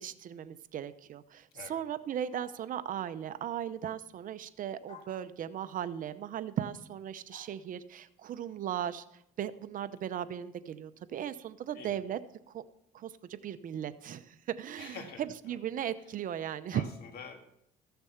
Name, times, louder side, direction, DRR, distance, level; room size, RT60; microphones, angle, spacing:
voice 1, 0.0-12.2 12.5-12.6 12.9-16.8, right 10 dB, 55° right, 13 dB, 0.7 m, -37 dB
sound 1, 2.3-2.7 4.9-5.2 7.3-7.5, left 2 dB, 45° left, 2.5 m, -52 dB
voice 2, 14.8-15.6 16.7-17.4, left 6 dB, 65° left, 5 dB, 1.9 m, -46 dB
14.5 x 6.9 x 5.7 m, 0.77 s
cardioid pair, 110°, 17 cm